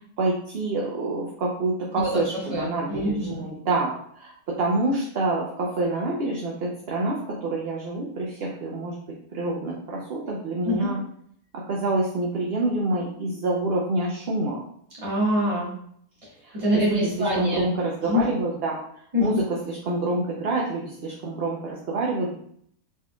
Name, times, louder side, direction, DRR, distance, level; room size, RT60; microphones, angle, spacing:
voice 1, 0.2-8.9 9.3-11.0 11.7-14.6 16.4-16.6 16.9-18.8 19.2-22.4, right 2 dB, 55° right, -3 dB, 0.8 m, -27 dB
voice 2, 2.5-3.5 10.6-10.9 15.0-15.7 16.5-17.7 18.0-18.2 19.1-19.4, left 1 dB, 25° right, -6 dB, 1.5 m, -25 dB
4.3 x 3.5 x 2.2 m, 0.66 s
omnidirectional pair, 1.5 m